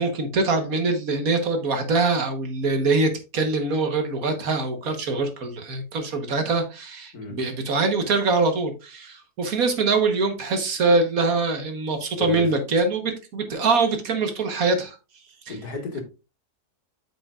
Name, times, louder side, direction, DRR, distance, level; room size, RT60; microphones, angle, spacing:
voice 1, 0.0-15.0 15.5-15.6, right 3 dB, 60° right, 1.6 m, -23 dB
voice 2, 12.2-12.5 15.5-16.0, left 3 dB, 70° left, 2.2 m, -32 dB
8.7 x 6.4 x 2.4 m
omnidirectional pair, 1.7 m